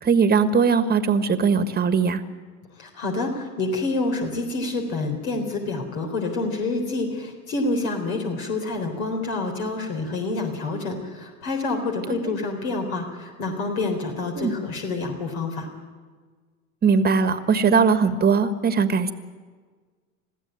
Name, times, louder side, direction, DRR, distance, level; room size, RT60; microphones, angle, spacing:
voice 1, 0.0-2.2 12.2-12.3 14.3-14.5 16.8-19.1, right 5 dB, 20° right, 11 dB, 1.5 m, -20 dB
voice 2, 2.8-15.7, left 3 dB, 70° left, 3 dB, 4.0 m, -27 dB
21.5 x 15.0 x 9.1 m, 1.5 s
hypercardioid pair, 90°, 42 cm